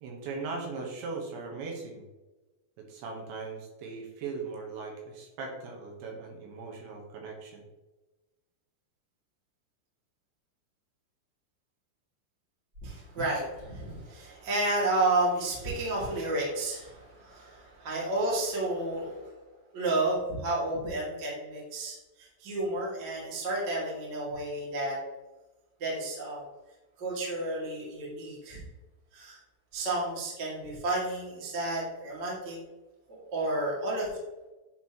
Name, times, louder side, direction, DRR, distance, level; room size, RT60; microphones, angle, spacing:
voice 1, 0.0-2.1 2.8-7.6, right 4 dB, 75° right, 0 dB, 3.2 m, -39 dB
voice 2, 12.8-19.2 19.7-25.0 25.8-26.4 27.0-28.6 29.1-29.4 29.7-32.6 33.1-34.2, right 2 dB, 40° right, -5 dB, 1.5 m, -31 dB
10.5 x 4.1 x 2.9 m, 1.1 s
omnidirectional pair, 5.5 m